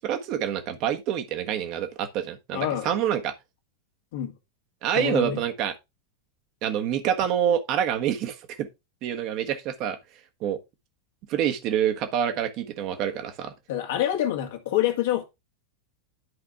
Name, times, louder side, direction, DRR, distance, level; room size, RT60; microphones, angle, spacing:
voice 1, 0.0-3.3 4.8-5.7 6.6-8.7 9.0-10.0 10.4-10.6 11.3-13.5, right 9 dB, 40° right, 1.4 m, -27 dB
voice 2, 2.5-2.9 4.1-4.3 4.9-5.4 13.7-15.2, left 11 dB, 55° left, 1.9 m, -26 dB
11.0 x 5.0 x 3.5 m
figure-of-eight pair, 90°, 0 cm